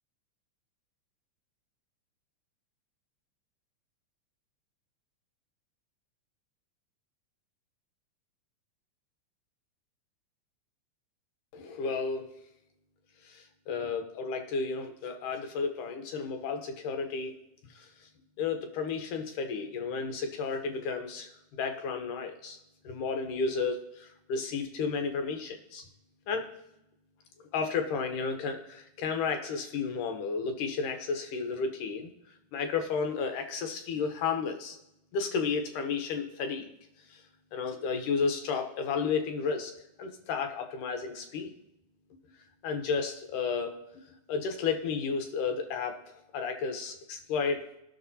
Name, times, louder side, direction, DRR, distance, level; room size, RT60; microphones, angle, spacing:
voice 1, 11.5-12.3 13.2-17.3 17.7-17.9 18.4-21.3 21.6-22.6 22.8-25.8 26.3-26.5 27.5-32.1 32.5-34.8 35.1-36.6 37.1-37.2 37.5-39.7 40.0-41.5 42.6-43.8 44.3-46.0 46.3-47.7, left 5 dB, 85° left, 5 dB, 2.5 m, -32 dB
18.0 x 6.2 x 2.7 m, 0.85 s
omnidirectional pair, 3.5 m